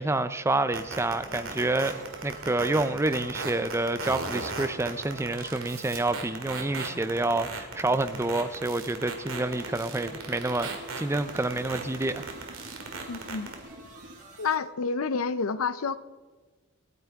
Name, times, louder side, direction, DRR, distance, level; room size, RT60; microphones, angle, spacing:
voice 1, 0.0-12.2, right 2 dB, 10° right, 0.4 m, -28 dB
sound 1, 0.7-13.5, right 4 dB, 65° right, 2.2 m, -36 dB
sound 2, 0.9-14.6, right 2 dB, 35° right, 2.5 m, -51 dB
sound 3, 9.0-14.2, right 1 dB, 50° right, 1.6 m, -47 dB
voice 2, 13.1-13.5 14.4-16.0, left 5 dB, 75° left, 0.6 m, -29 dB
27.0 x 9.5 x 3.6 m
head